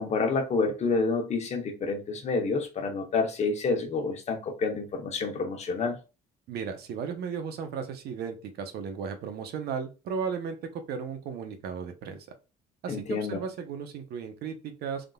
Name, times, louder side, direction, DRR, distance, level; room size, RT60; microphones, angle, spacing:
voice 1, 0.0-6.0 12.9-13.4, left 4 dB, 40° left, 0.9 m, -28 dB
voice 2, 6.5-12.2 12.8-15.1, right 6 dB, 70° right, 0.8 m, -35 dB
3.6 x 2.5 x 2.3 m
cardioid pair, 110°, 17 cm